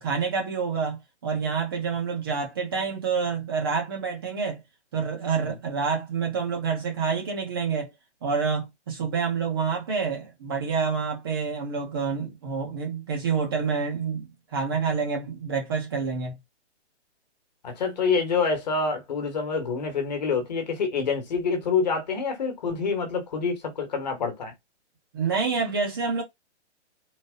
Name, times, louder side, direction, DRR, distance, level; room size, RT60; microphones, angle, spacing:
voice 1, 0.0-4.6 4.9-7.9 8.2-16.3 25.1-26.2, right 5 dB, 20° right, 1.1 m, -28 dB
voice 2, 17.6-24.5, left 5 dB, 35° left, 1.6 m, -27 dB
4.1 x 3.0 x 3.8 m
hypercardioid pair, 180°, 35 cm